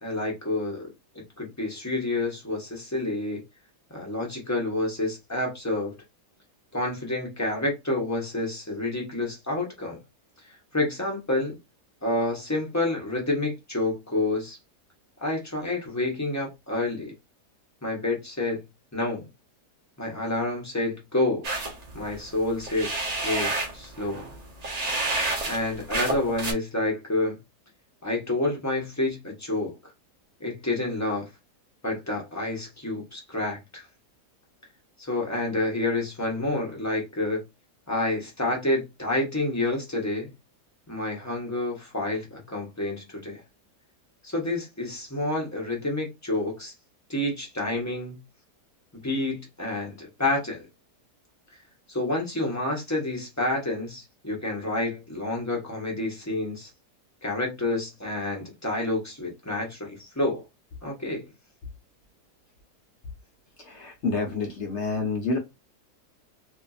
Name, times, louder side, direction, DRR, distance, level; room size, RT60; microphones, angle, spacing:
voice 1, 0.0-0.9 1.1-3.4 3.9-5.9 6.7-10.0 10.7-11.6 12.0-14.6 15.2-17.1 17.8-18.6 18.9-19.2 20.0-21.4 21.9-22.9 23.2-24.2 25.5-27.4 28.0-29.7 30.4-31.3 31.8-33.8 35.0-37.4 37.9-40.3 40.9-43.4 44.2-46.7 47.1-48.2 48.9-50.7 51.9-56.7 57.2-60.4 60.8-61.2, left 2 dB, 15° left, 0.6 m, -28 dB
sound 1, 21.4-26.5, right 2 dB, 70° right, 0.3 m, -30 dB
voice 2, 63.6-65.4, left 3 dB, 55° left, 0.8 m, -28 dB
2.7 x 2.6 x 2.3 m
omnidirectional pair, 1.8 m